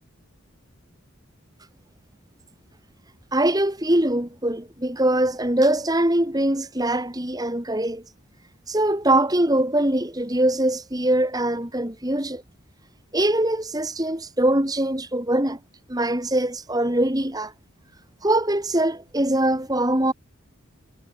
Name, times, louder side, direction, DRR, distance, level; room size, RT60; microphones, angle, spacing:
voice 1, 3.3-8.0 8.7-12.4 13.1-15.6 15.9-17.5 18.2-20.1, right 1 dB, 20° right, 2.5 m, -22 dB
head